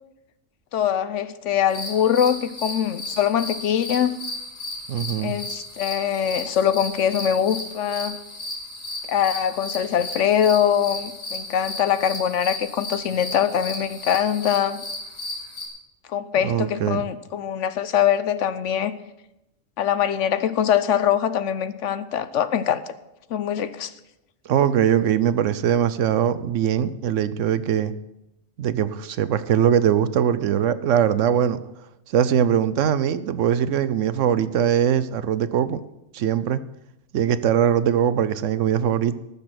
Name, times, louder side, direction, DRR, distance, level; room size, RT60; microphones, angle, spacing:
voice 1, 0.7-4.1 5.2-8.2 9.1-14.8 16.1-19.0 19.8-22.8 23.3-23.9, left 9 dB, 70° left, 14 dB, 1.0 m, -23 dB
sound 1, 1.7-15.7, left 2 dB, 55° left, 3.5 m, -34 dB
voice 2, 4.9-5.4 16.4-17.0 24.5-27.9 28.6-31.6 32.1-35.8 36.1-36.6 37.1-39.1, right 9 dB, 75° right, 14 dB, 1.0 m, -21 dB
18.5 x 7.0 x 5.9 m, 0.91 s
omnidirectional pair, 1.3 m